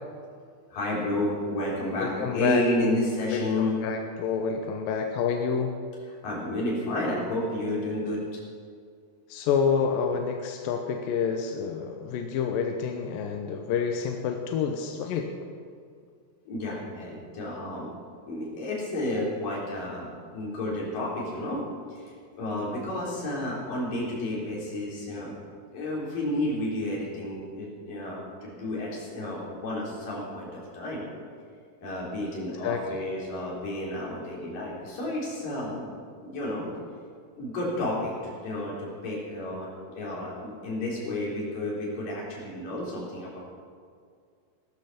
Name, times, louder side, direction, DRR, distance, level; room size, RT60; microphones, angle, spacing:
voice 1, 0.7-3.8 6.2-8.2 16.5-17.9 18.3-21.6 21.9-25.3 25.7-31.3 31.8-35.9 36.2-36.7 37.3-43.4, left 1 dB, 55° left, -4 dB, 5.5 m, -31 dB
voice 2, 2.0-2.6 3.3-5.7 9.3-15.3 32.6-32.8, left 6 dB, 75° left, 3 dB, 2.3 m, -28 dB
17.0 x 13.0 x 5.8 m, 2.2 s
omnidirectional pair, 4.7 m